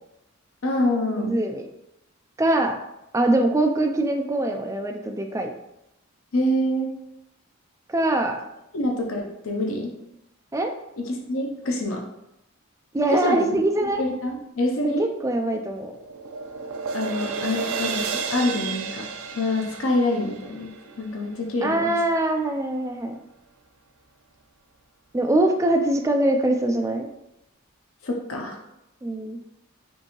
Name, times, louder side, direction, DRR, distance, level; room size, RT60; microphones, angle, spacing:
voice 1, 0.6-1.4 6.3-6.9 8.7-9.9 11.0-12.0 13.1-13.4 14.0-15.1 16.9-19.1 19.3-20.7 21.0-21.9 28.0-28.6, left 1 dB, 70° left, 0 dB, 0.7 m, -26 dB
voice 2, 1.2-1.6 2.4-2.8 3.1-5.5 7.9-8.4 10.5-10.7 12.9-14.0 14.8-16.0 21.6-23.2 25.1-27.1 29.0-29.4, right 1 dB, 15° right, 4 dB, 0.4 m, -23 dB
sound 1, 15.3-21.6, right 5 dB, 80° right, 0.4 m, -32 dB
5.3 x 2.7 x 3.0 m, 0.85 s
head